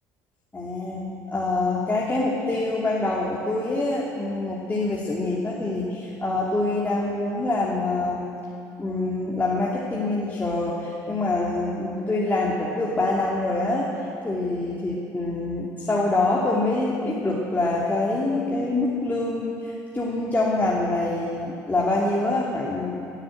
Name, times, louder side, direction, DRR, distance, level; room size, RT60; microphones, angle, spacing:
voice 1, 0.5-8.3 8.8-13.9 14.2-22.9, left 2 dB, 20° left, -5 dB, 2.7 m, -25 dB
17.5 x 9.9 x 7.9 m, 2.6 s
hypercardioid pair, 60°, 8 cm